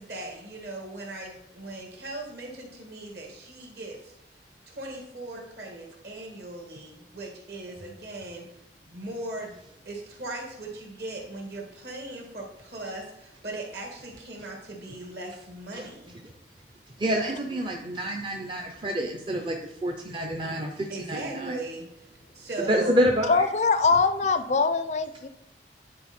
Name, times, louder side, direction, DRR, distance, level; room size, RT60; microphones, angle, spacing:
voice 1, 0.0-4.1 4.7-8.6 8.9-9.6 9.8-16.1 20.9-23.0, right 1 dB, 60° right, 0 dB, 1.9 m, -38 dB
voice 2, 17.0-21.6 22.7-23.4, equal, 25° right, 2 dB, 0.5 m, -28 dB
voice 3, 23.3-25.3, left 4 dB, 40° left, 11 dB, 0.4 m, -23 dB
9.8 x 4.3 x 4.2 m, 0.82 s
head